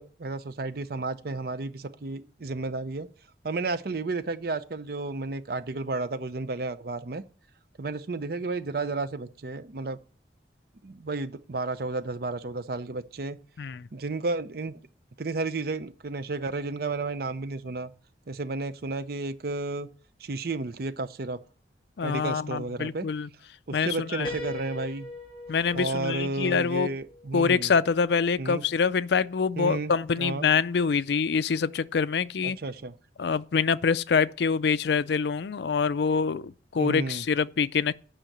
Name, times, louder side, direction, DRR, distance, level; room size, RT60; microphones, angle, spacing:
voice 1, 0.0-3.1 3.4-7.2 7.8-10.0 10.8-13.4 13.9-14.8 15.2-17.9 18.3-19.9 20.2-21.4 22.0-23.1 23.7-25.1 25.7-27.7 28.4-28.6 29.6-29.9 30.2-30.5 32.4-32.9 36.8-37.2, right 3 dB, 55° right, 0.6 m, -32 dB
voice 2, 22.0-23.3 23.7-24.3 25.5-26.9 27.3-32.6 33.2-37.9, left 5 dB, 65° left, 0.4 m, -25 dB
Piano, 24.2-28.0, left 2 dB, 30° left, 2.6 m, -41 dB
8.9 x 5.7 x 7.9 m
head